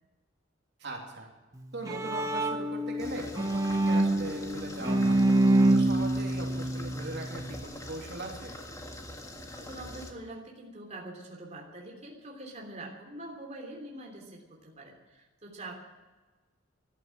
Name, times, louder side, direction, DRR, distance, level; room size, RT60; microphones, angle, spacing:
voice 1, 0.8-1.3 1.7-5.2 5.7-8.6, right 2 dB, 60° right, 0 dB, 3.1 m, -40 dB
Bowed string instrument, 1.5-7.6, right 1 dB, 20° right, 1.3 m, -26 dB
sound 1, 3.0-10.1, left 1 dB, 15° left, 1.7 m, -44 dB
voice 2, 9.5-15.7, right 1 dB, 35° right, -1 dB, 3.2 m, -44 dB
14.0 x 12.0 x 7.7 m, 1.2 s
head